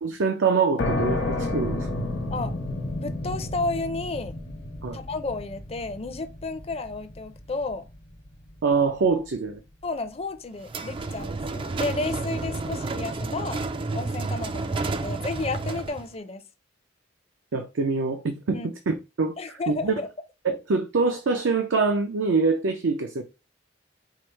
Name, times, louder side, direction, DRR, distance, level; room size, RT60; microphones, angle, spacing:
voice 1, 0.0-2.0 4.8-5.0 8.6-9.6 17.5-19.4 19.7-20.0 20.4-23.2, right 4 dB, 80° right, 0.5 m, -24 dB
sound 1, 0.8-8.2, left 2 dB, 75° left, 1.1 m, -31 dB
voice 2, 3.0-4.4 4.9-7.8 9.8-13.6 13.9-16.4 18.5-18.7 19.4-20.1, left 3 dB, 30° left, 0.5 m, -32 dB
sound 2, 10.6-16.1, right 3 dB, 25° right, 0.3 m, -30 dB
4.7 x 2.1 x 4.4 m
head